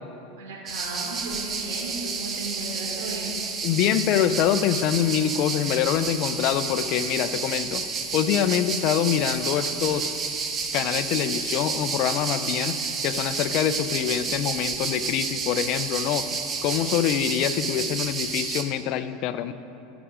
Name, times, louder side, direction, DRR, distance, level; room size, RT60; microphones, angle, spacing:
voice 1, 0.3-3.3, right 2 dB, 85° right, -3 dB, 3.1 m, -35 dB
sound 1, 0.7-18.6, right 5 dB, 30° right, 0.9 m, -30 dB
voice 2, 3.6-7.8 8.1-10.1 10.7-16.3 16.6-19.5, left 10 dB, 50° left, 11 dB, 0.5 m, -25 dB
16.5 x 6.1 x 5.0 m, 2.8 s
supercardioid pair, 125°, 0 cm